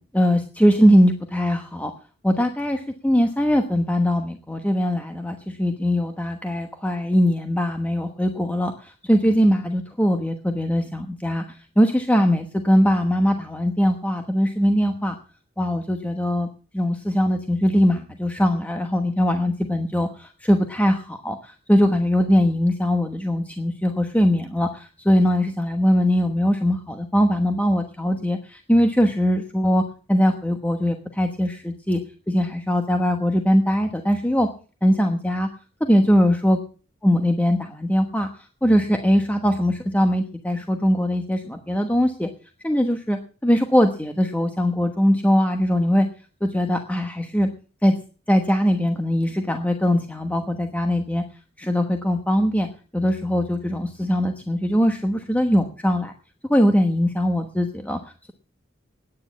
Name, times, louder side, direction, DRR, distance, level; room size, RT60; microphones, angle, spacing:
voice 1, 0.0-1.9 2.2-11.4 11.8-15.1 15.6-16.5 16.7-29.8 30.1-32.0 32.3-34.5 34.8-35.5 35.8-36.6 37.0-38.3 38.6-42.3 42.6-46.1 46.4-47.5 47.8-47.9 48.3-51.2 51.6-52.7 52.9-56.1 56.5-58.0, equal, 10° left, 5 dB, 1.1 m, -21 dB
10.5 x 9.7 x 8.5 m, 0.38 s
head